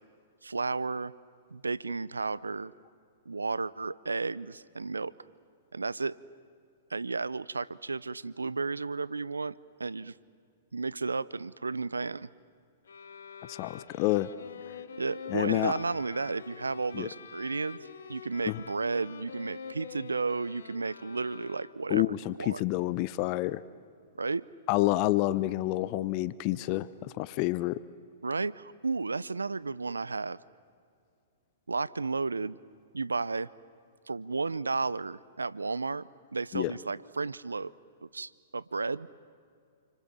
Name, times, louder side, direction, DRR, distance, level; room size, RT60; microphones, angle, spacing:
voice 1, 0.4-1.1 1.5-2.7 3.3-5.1 5.7-6.2 6.9-9.5 9.8-10.1 10.7-12.3 15.0-17.8 18.1-22.6 24.2-24.4 28.2-30.4 31.7-32.6 32.9-33.5 34.1-37.7 38.0-39.1, right 4 dB, 85° right, 20 dB, 0.6 m, -33 dB
sound 1, 12.9-22.1, left 6 dB, 70° left, 1.5 m, -46 dB
voice 2, 13.5-14.3 15.3-15.7 16.9-17.1 18.4-18.6 21.9-23.6 24.7-27.8 36.5-36.7, left 18 dB, 40° left, 17 dB, 0.8 m, -28 dB
29.5 x 24.5 x 7.5 m, 2.3 s
figure-of-eight pair, 110°, 0 cm